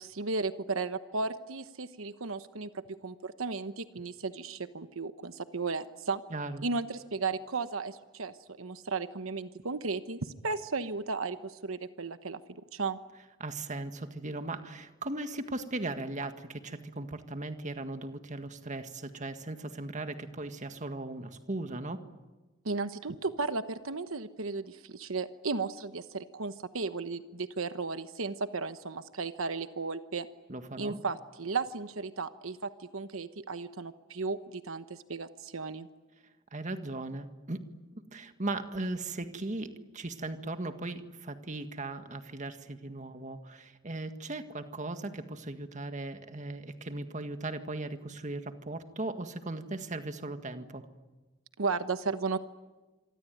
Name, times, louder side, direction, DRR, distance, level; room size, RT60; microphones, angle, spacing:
voice 1, 0.0-6.2 6.6-12.4 12.7-13.0 22.6-30.3 30.8-35.9 51.6-52.4, right 4 dB, 85° right, 10 dB, 1.1 m, -35 dB
voice 2, 6.3-6.6 13.4-22.0 30.5-31.0 36.5-37.6 38.0-50.9, right 2 dB, 35° right, 8 dB, 1.7 m, -38 dB
26.5 x 24.5 x 9.3 m, 1.2 s
head